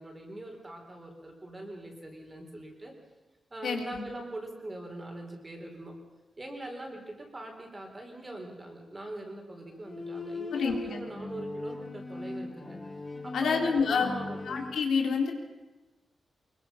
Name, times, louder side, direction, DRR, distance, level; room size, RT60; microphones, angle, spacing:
voice 1, 0.0-2.9 3.5-5.9 6.4-12.8 13.2-14.6, right 1 dB, 20° right, 2 dB, 4.2 m, -42 dB
voice 2, 3.6-4.0 10.5-11.0 13.3-14.1 14.4-15.3, left 5 dB, 80° left, 2 dB, 3.3 m, -28 dB
Bowed string instrument, 9.7-14.8, left 3 dB, 20° left, 1.7 m, -39 dB
24.5 x 23.0 x 5.8 m, 1.1 s
wide cardioid pair, 150°, 0 cm